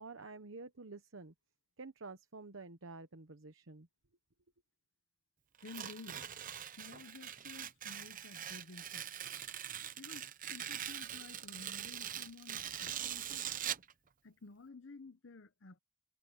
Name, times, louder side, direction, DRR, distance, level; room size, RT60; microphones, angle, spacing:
voice 1, 0.0-1.3 1.8-3.9, right 3 dB, 80° right, 1.0 m, -49 dB
voice 2, 5.6-6.3 6.7-9.1 10.0-13.5 14.2-15.8, left 3 dB, 70° left, 0.9 m, -53 dB
Tearing, 5.6-13.9, right 10 dB, 45° right, 0.8 m, -43 dB
head